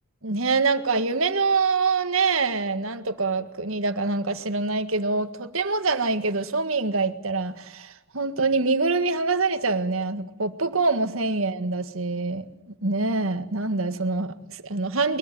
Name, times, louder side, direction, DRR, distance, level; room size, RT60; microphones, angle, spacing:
voice 1, 0.2-15.2, right 3 dB, 75° right, 9 dB, 1.8 m, -25 dB
22.5 x 22.0 x 9.2 m, 0.84 s
head